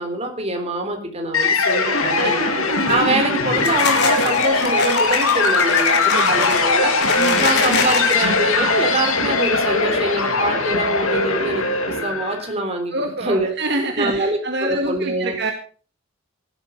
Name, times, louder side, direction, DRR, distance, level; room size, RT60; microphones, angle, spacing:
voice 1, 0.0-12.9 13.2-13.5 14.0-15.3, right 1 dB, 30° right, 4 dB, 3.7 m, -24 dB
sound 1, 1.3-12.5, left 3 dB, 80° left, 3.0 m, -20 dB
sound 2, 2.7-3.1 3.5-8.3, left 4 dB, 50° left, 3.8 m, -25 dB
voice 2, 6.1-6.5 7.2-7.5 12.9-15.5, right 2 dB, 55° right, 4 dB, 1.8 m, -26 dB
16.0 x 12.5 x 5.3 m, 0.41 s
head